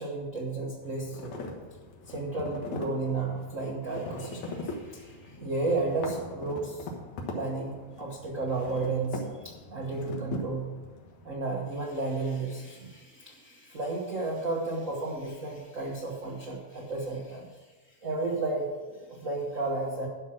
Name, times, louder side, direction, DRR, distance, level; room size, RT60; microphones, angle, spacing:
voice 1, 0.0-1.4 2.1-6.9 7.3-10.7 11.2-20.1, right 3 dB, 60° right, -2 dB, 0.8 m, -33 dB
sound 1, 0.8-11.3, left 2 dB, 80° left, 2.8 m, -41 dB
11.5 x 5.9 x 6.3 m, 1.3 s
omnidirectional pair, 3.3 m